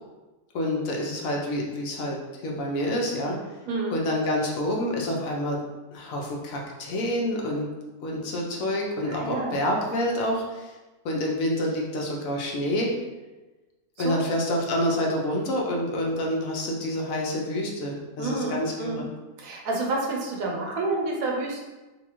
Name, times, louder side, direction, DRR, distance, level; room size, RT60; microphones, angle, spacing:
voice 1, 0.5-2.2 2.4-3.4 3.9-5.6 5.9-7.7 8.0-10.7 11.0-12.9 14.0-19.1, left 1 dB, 70° left, -1 dB, 0.9 m, -27 dB
voice 2, 9.0-9.6 14.0-14.4 18.2-19.0 19.4-21.6, right 2 dB, 70° right, -1 dB, 1.0 m, -29 dB
4.1 x 2.3 x 2.9 m, 1.2 s
omnidirectional pair, 1.6 m